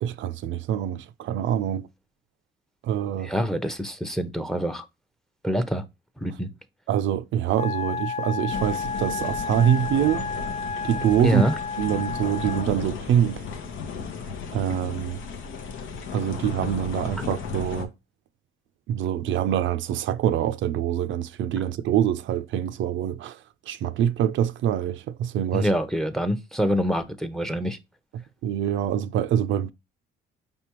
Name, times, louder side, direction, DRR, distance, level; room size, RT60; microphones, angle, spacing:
voice 1, 0.0-1.9 2.8-3.3 6.9-10.5 10.8-11.4 11.8-13.4 14.5-15.2 16.1-17.9 18.9-23.4 23.7-25.7 28.1-29.7, right 10 dB, 75° right, 0.4 m, -25 dB
voice 2, 3.2-4.8 5.4-5.8 6.2-6.5 11.2-11.6 25.5-27.8, equal, ahead, 0.7 m, -25 dB
Wind instrument woodwind instrument, 7.5-12.8, left 4 dB, 35° left, 0.4 m, -32 dB
sound 1, 8.5-17.9, left 5 dB, 80° left, 0.9 m, -35 dB
5.3 x 3.4 x 2.9 m
cardioid pair, 90°, 20 cm